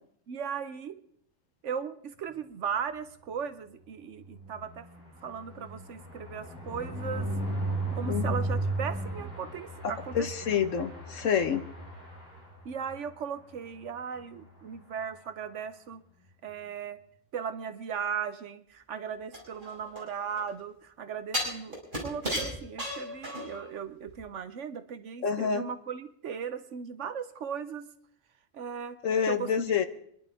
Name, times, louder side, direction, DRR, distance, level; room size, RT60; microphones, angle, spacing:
voice 1, 0.3-1.0 1.6-4.9 5.2-7.3 7.9-10.5 12.6-16.0 16.4-17.0 17.3-27.9 28.5-29.0 29.3-29.7, right 7 dB, 70° right, 11 dB, 1.1 m, -37 dB
sound 1, 4.2-13.0 13.4-13.6 13.8-13.9 14.2-14.5, right 1 dB, 10° right, 6.2 m, -35 dB
voice 2, 9.8-11.6 25.2-25.7 29.0-29.9, left 7 dB, 75° left, 9 dB, 1.4 m, -28 dB
sound 2, 19.3-20.5 21.3-23.7 24.1-24.2, equal, 40° right, 5.0 m, -34 dB
25.0 x 11.0 x 3.5 m, 0.66 s
omnidirectional pair, 1.3 m